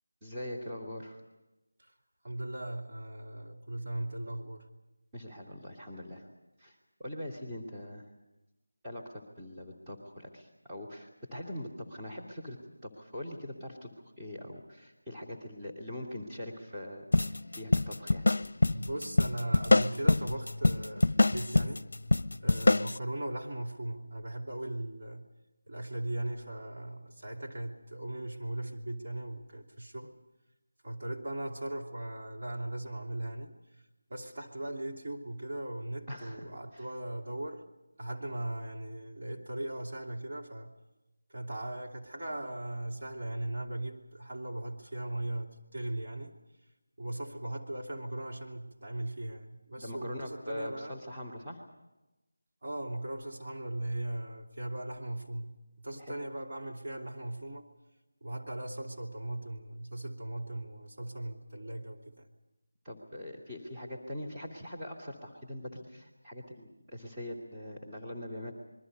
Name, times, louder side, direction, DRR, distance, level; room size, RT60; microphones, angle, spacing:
voice 1, 0.2-1.2 5.1-6.3 6.6-8.1 8.8-12.6 12.8-18.3 36.1-36.5 36.7-36.9 49.8-51.6 56.0-56.2 62.8-68.5, left 1 dB, 10° right, -6 dB, 2.6 m, -42 dB
voice 2, 2.2-4.7 18.7-21.8 22.4-25.3 25.7-30.1 30.8-33.5 34.1-37.6 38.0-40.7 41.3-46.3 47.0-51.0 52.6-57.7 58.2-62.3, right 1 dB, 45° right, 0 dB, 3.0 m, -38 dB
sound 1, 17.1-23.0, left 2 dB, 60° left, 0.7 m, -25 dB
28.0 x 22.5 x 5.4 m, 1.0 s
figure-of-eight pair, 170°, 0 cm